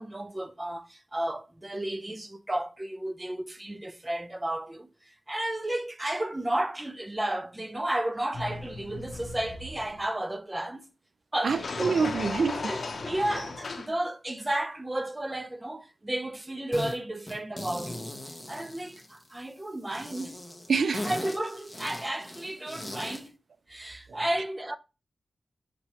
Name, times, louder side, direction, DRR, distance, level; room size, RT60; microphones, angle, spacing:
voice 1, 0.0-4.9 5.3-10.8 11.3-12.1 12.6-18.1 18.5-20.4 21.0-23.3 23.7-24.8, right 1 dB, 20° right, 0.5 m, -33 dB
sound 1, 8.3-10.1 11.4-13.9, left 3 dB, 70° left, 0.7 m, -36 dB
voice 2, 11.4-12.6 20.7-21.1, right 5 dB, 75° right, 0.3 m, -26 dB
sound 2, 16.7-17.0 17.3-19.4 19.9-23.3, left 1 dB, 10° left, 1.0 m, -39 dB
5.9 x 2.9 x 2.9 m
wide cardioid pair, 80°, 0 cm